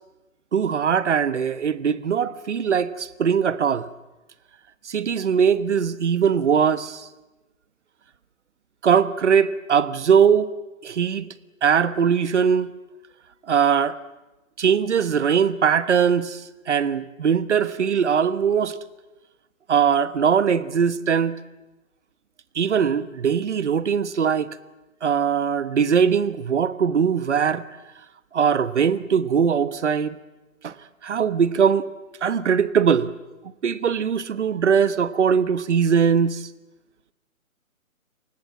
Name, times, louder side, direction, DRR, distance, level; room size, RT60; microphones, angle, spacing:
voice 1, 0.5-3.9 4.9-7.1 8.8-10.5 10.8-11.3 11.6-12.7 13.5-14.0 14.6-16.4 16.7-18.8 19.7-21.3 22.5-24.5 25.0-27.6 28.3-30.2 30.6-30.7 31.0-31.9 32.2-33.2 33.6-36.5, right 7 dB, 55° right, 1.2 m, -21 dB
29.0 x 19.5 x 7.6 m
figure-of-eight pair, 140°, 41 cm